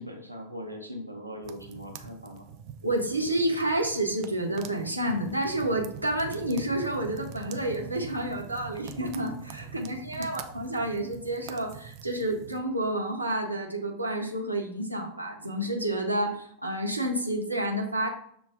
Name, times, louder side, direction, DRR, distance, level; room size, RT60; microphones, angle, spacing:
voice 1, 0.0-2.5 9.7-9.8 10.2-10.3, equal, 90° left, 2 dB, 0.6 m, -40 dB
sound 1, 1.4-12.6, right 7 dB, 40° right, 0.4 m, -44 dB
voice 2, 2.8-18.1, right 1 dB, 85° right, 1 dB, 0.7 m, -29 dB
6.7 x 2.3 x 2.3 m, 0.67 s
figure-of-eight pair, 90°, 0 cm